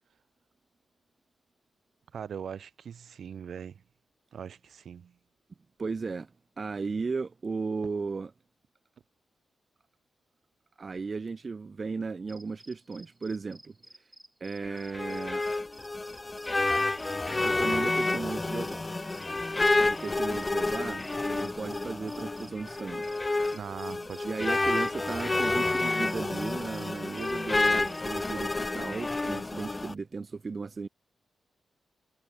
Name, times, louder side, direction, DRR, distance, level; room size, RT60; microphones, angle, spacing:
voice 1, 2.1-3.8 4.3-5.1 23.5-24.5, right 7 dB, 65° right, 2.7 m, -41 dB
voice 2, 5.8-6.3 6.6-8.3 10.8-14.0 14.4-15.5 17.4-18.9 19.9-23.1 24.2-30.9, right 4 dB, 35° right, 1.1 m, -35 dB
sound 1, 12.3-28.4, right 1 dB, 10° right, 2.7 m, -55 dB
sound 2, 14.6-29.9, left 2 dB, 20° left, 1.3 m, -29 dB
wide cardioid pair, 145°, 0 cm